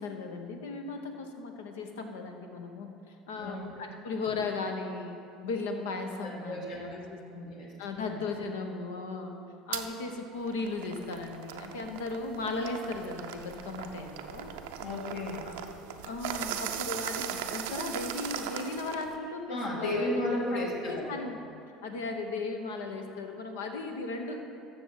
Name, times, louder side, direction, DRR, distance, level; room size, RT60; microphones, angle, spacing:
voice 1, 0.0-9.4 9.7-14.5 15.4-15.5 16.0-20.1 20.5-21.4 21.8-24.4, left 3 dB, 75° left, 4 dB, 0.9 m, -36 dB
voice 2, 6.2-6.9 7.2-7.7 14.8-15.5 19.5-21.2, left 1 dB, 60° left, -3 dB, 1.9 m, -33 dB
sound 1, 9.7-9.9 10.4-19.2, right 9 dB, 70° right, 0.5 m, -38 dB
13.5 x 6.5 x 4.0 m, 2.6 s
hypercardioid pair, 70°, 0 cm